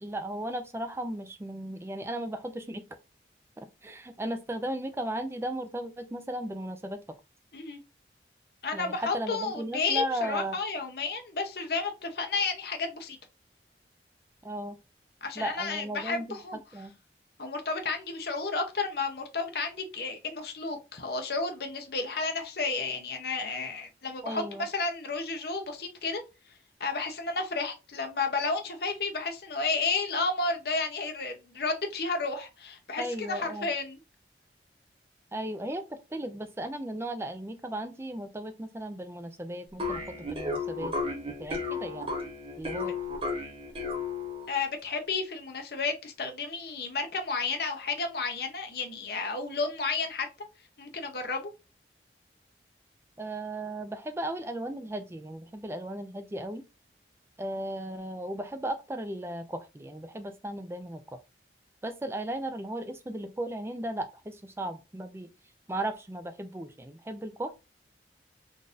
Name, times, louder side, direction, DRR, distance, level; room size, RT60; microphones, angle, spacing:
voice 1, 0.0-2.9 3.6-7.0 8.7-10.6 14.4-14.8 15.4-16.4 16.7-16.9 24.2-24.7 33.0-33.7 35.3-40.0 40.3-40.9 41.4-42.1 42.6-43.0 53.2-56.6 57.4-61.0 61.8-65.3 65.7-67.5, right 1 dB, 15° right, 0.4 m, -36 dB
voice 2, 8.6-13.2 15.2-16.6 17.4-26.2 26.8-34.0 44.5-50.3 50.8-51.5, left 4 dB, 60° left, 0.7 m, -32 dB
sound 1, 39.8-44.6, left 3 dB, 30° right, 1.2 m, -33 dB
3.8 x 2.5 x 2.5 m
head